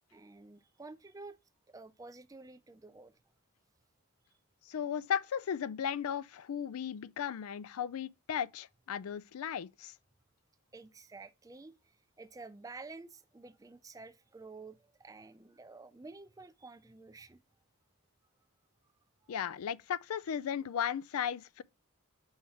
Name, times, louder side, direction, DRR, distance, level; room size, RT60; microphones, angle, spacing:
voice 1, 0.1-1.4 1.7-3.2 10.7-17.4 19.2-19.3, right 3 dB, 15° right, 0.3 m, -51 dB
voice 2, 4.7-9.9 19.3-21.6, left 8 dB, 80° left, 0.4 m, -36 dB
5.5 x 4.7 x 4.3 m
head